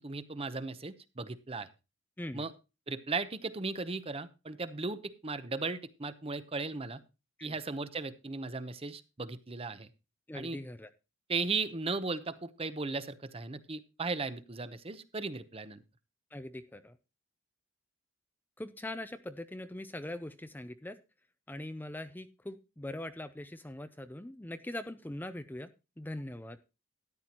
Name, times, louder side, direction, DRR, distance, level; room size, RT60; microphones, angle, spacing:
voice 1, 0.0-1.7 2.3-2.5 2.9-7.0 7.4-9.9 10.3-10.6 11.3-15.8, right 3 dB, 30° right, 13 dB, 0.8 m, -36 dB
voice 2, 10.3-10.9 16.3-17.0 18.6-21.0 21.5-25.7 26.0-26.6, left 1 dB, 10° left, 11 dB, 0.5 m, -42 dB
13.5 x 10.5 x 2.9 m, 0.28 s
head